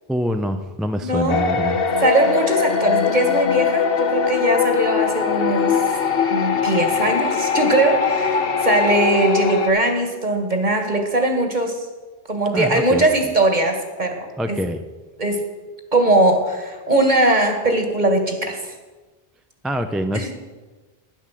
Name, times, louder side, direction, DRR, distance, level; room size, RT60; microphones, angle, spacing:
voice 1, 0.1-1.8 12.5-13.1 14.4-14.8 19.6-20.4, equal, ahead, 7 dB, 0.6 m, -25 dB
voice 2, 1.0-1.4 2.0-5.8 6.3-11.9 12.3-14.6 15.2-15.4 15.9-18.7 20.1-20.3, right 2 dB, 45° right, 5 dB, 2.1 m, -20 dB
sound 1, 1.3-9.7, left 6 dB, 65° left, 1.2 m, -21 dB
12.0 x 10.5 x 7.6 m, 1.3 s
omnidirectional pair, 1.1 m